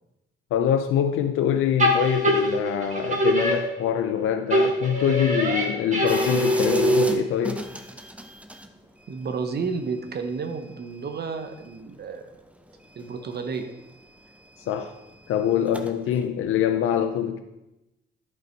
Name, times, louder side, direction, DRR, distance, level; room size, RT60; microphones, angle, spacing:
voice 1, 0.5-7.6 14.7-14.9 15.3-17.4, left 9 dB, 80° left, 7 dB, 0.6 m, -24 dB
sound 1, 1.8-4.2 4.5-7.4, right 1 dB, 35° right, 2.0 m, -23 dB
sound 2, 6.1-8.7 9.0-12.2 12.5-16.3, right 1 dB, 5° right, 0.8 m, -38 dB
voice 2, 9.1-12.3 13.0-13.7, right 5 dB, 50° right, 7 dB, 0.9 m, -31 dB
10.5 x 5.4 x 4.5 m, 0.97 s
cardioid pair, 75°, 21 cm